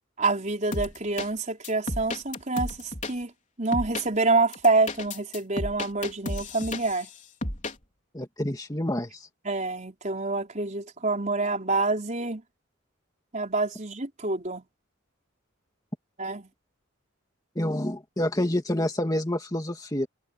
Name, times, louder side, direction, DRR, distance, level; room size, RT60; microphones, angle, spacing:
voice 1, 0.2-3.3 3.6-7.1 9.4-12.4 13.3-14.6 16.2-16.5, right 3 dB, 40° right, 4.6 m, -27 dB
sound 1, 0.7-1.3 1.6-3.1 3.7-4.1 4.5-7.1 7.4-7.7, left 2 dB, 40° left, 4.0 m, -32 dB
voice 2, 8.1-9.3 17.6-20.1, left 1 dB, 20° left, 2.2 m, -28 dB
head